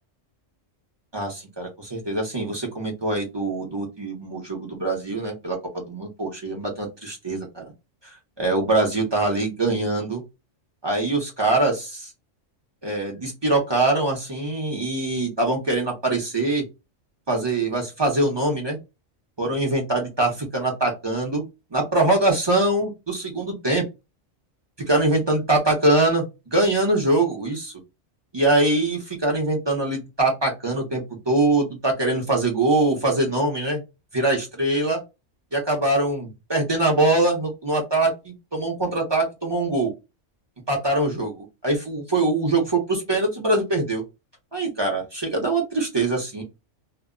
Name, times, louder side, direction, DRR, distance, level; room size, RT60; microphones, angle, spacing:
voice 1, 1.1-7.7 8.0-10.2 10.8-12.1 12.8-16.6 17.3-18.8 19.4-21.4 21.7-23.8 24.9-26.2 26.5-27.7 28.3-33.8 34.1-35.0 35.5-39.9 40.7-44.0 44.5-46.4, right 2 dB, 30° right, 0 dB, 0.5 m, -23 dB
2.1 x 2.1 x 3.5 m, 0.25 s
omnidirectional pair, 1.3 m